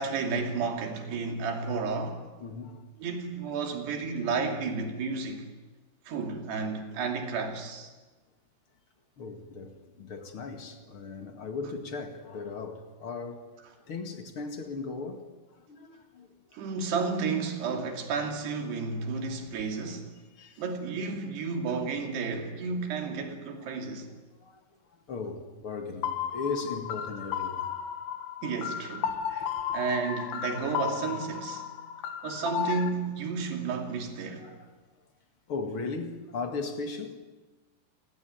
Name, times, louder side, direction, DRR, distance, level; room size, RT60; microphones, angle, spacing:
voice 1, 0.0-2.2 3.0-5.5 6.1-7.9 16.5-20.1 20.6-24.1 28.4-31.6 32.2-34.5, right 4 dB, 85° right, 4.8 m, -32 dB
voice 2, 2.4-2.9 9.2-13.5 13.9-15.2 15.5-16.3 20.4-20.6 23.3-23.8 24.4-24.6 25.1-27.8 29.1-29.8 34.3-34.7 35.5-37.2, left 4 dB, 40° left, 2.2 m, -38 dB
sound 1, 26.0-32.9, left 9 dB, 90° left, 3.8 m, -34 dB
29.0 x 18.5 x 9.4 m
omnidirectional pair, 4.7 m